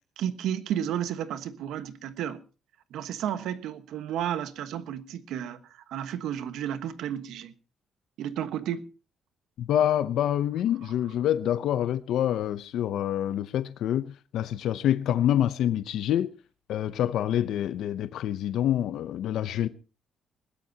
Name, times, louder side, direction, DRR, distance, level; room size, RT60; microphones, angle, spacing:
voice 1, 0.2-2.4 2.9-7.5 8.2-8.9, right 10 dB, 85° right, 1.3 m, -32 dB
voice 2, 9.6-16.3 16.7-19.7, left 11 dB, 75° left, 0.7 m, -26 dB
20.5 x 17.0 x 2.9 m
cardioid pair, 150°, 0 cm